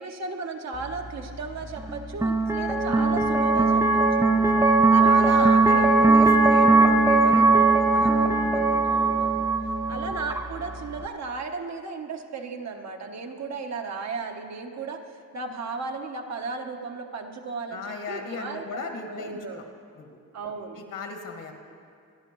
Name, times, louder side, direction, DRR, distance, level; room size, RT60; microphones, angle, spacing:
voice 1, 0.0-4.3 4.9-5.5 6.1-6.5 7.3-7.6 8.8-9.5 9.9-15.0 15.3-18.6 19.1-19.6 20.3-20.8, right 4 dB, 50° right, 3 dB, 1.1 m, -35 dB
sound 1, 0.7-11.1, right 3 dB, 10° right, 0.6 m, -20 dB
voice 2, 5.0-7.5 7.8-8.8 9.9-10.0 17.7-19.6 20.0-20.2 20.8-21.5, left 4 dB, 65° left, 3 dB, 2.0 m, -37 dB
25.5 x 10.0 x 3.1 m, 2.3 s
cardioid pair, 110°, 34 cm